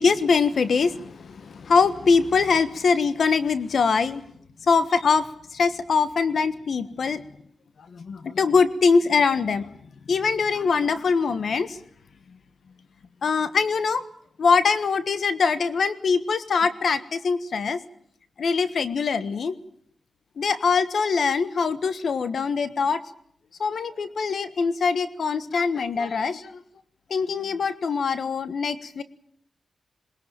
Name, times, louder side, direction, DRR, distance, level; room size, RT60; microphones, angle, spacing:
voice 1, 0.0-4.2 4.6-7.2 7.9-9.7 10.1-11.8 13.2-14.0 14.4-17.8 18.4-19.5 20.4-23.0 23.6-26.6 27.1-29.0, left 5 dB, 70° left, 12 dB, 1.4 m, -23 dB
21.0 x 21.0 x 9.1 m, 0.67 s
cardioid pair, 85°, 0 cm